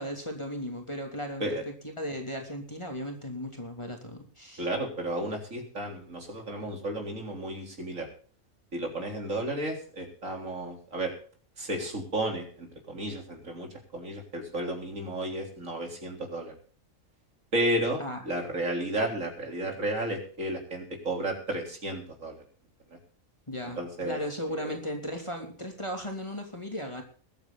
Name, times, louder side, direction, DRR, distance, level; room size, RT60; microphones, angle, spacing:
voice 1, 0.0-4.7 18.0-18.2 23.5-27.0, equal, 20° left, 2 dB, 3.0 m, -36 dB
voice 2, 4.6-8.1 8.7-11.1 11.6-16.5 17.5-22.4 22.9-23.0 23.8-24.2 24.6-24.8, right 1 dB, 60° right, 2 dB, 4.1 m, -33 dB
21.5 x 9.2 x 3.9 m, 0.43 s
omnidirectional pair, 1.5 m